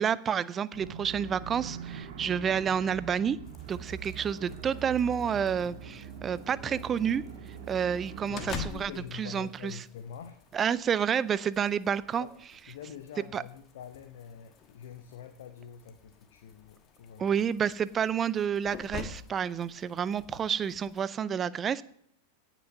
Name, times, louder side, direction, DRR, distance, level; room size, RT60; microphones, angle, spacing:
voice 1, 0.0-3.4 3.7-7.2 7.7-9.8 10.5-12.3 13.3-13.4 17.2-21.8, right 8 dB, 25° right, 19 dB, 0.5 m, -29 dB
sound 1, 0.7-8.6, right 7 dB, 50° right, 1.9 m, -43 dB
sound 2, 3.4-21.1, left 5 dB, 30° left, 1.3 m, -48 dB
voice 2, 8.3-10.4 12.2-12.4 12.7-17.4, left 8 dB, 55° left, 7 dB, 1.0 m, -45 dB
17.0 x 6.1 x 5.5 m, 0.68 s
figure-of-eight pair, 90°, 0 cm